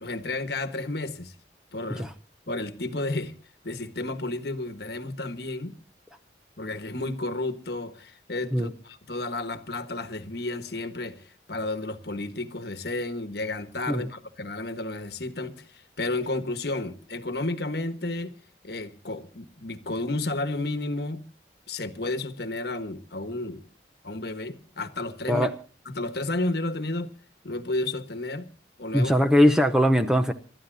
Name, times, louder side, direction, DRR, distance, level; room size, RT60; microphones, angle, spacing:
voice 1, 0.0-1.3 1.7-2.1 2.5-3.3 3.6-5.8 6.6-18.4 18.6-21.2 21.7-23.6 24.0-25.5 25.9-27.1 27.4-28.5 28.8-29.1, left 2 dB, 55° left, 1.3 m, -32 dB
voice 2, 28.9-30.3, equal, 5° right, 0.6 m, -21 dB
29.5 x 13.0 x 2.7 m
head